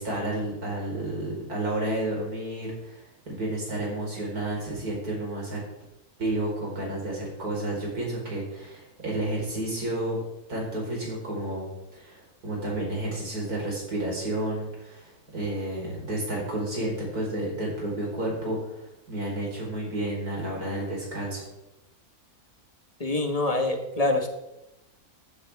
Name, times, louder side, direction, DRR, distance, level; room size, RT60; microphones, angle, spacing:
voice 1, 0.0-5.6 6.2-10.2 10.5-21.4, right 1 dB, 80° right, -2 dB, 5.0 m, -31 dB
voice 2, 23.0-24.3, left 2 dB, 25° left, 4 dB, 1.4 m, -25 dB
14.5 x 11.0 x 3.6 m, 0.91 s
omnidirectional pair, 1.6 m